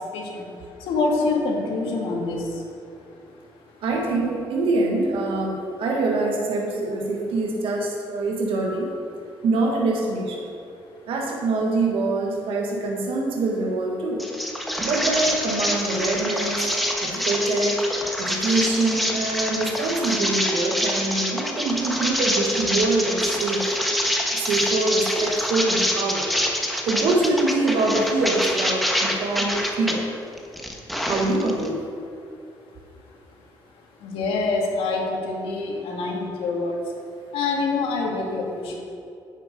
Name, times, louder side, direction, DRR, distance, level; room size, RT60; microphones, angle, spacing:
voice 1, 0.9-2.4 34.0-36.8 37.3-38.8, left 3 dB, 85° left, 0 dB, 1.9 m, -25 dB
voice 2, 3.8-8.9 9.4-10.5 11.1-14.2 14.8-16.7 17.0-17.9 18.2-23.6 24.3-26.3 26.9-30.0 31.1-31.9, right 2 dB, 75° right, 0 dB, 1.5 m, -24 dB
sound 1, 14.2-30.0 30.4-31.7, equal, ahead, 1.3 m, -26 dB
9.7 x 7.6 x 5.2 m, 2.5 s
cardioid pair, 90°, 9 cm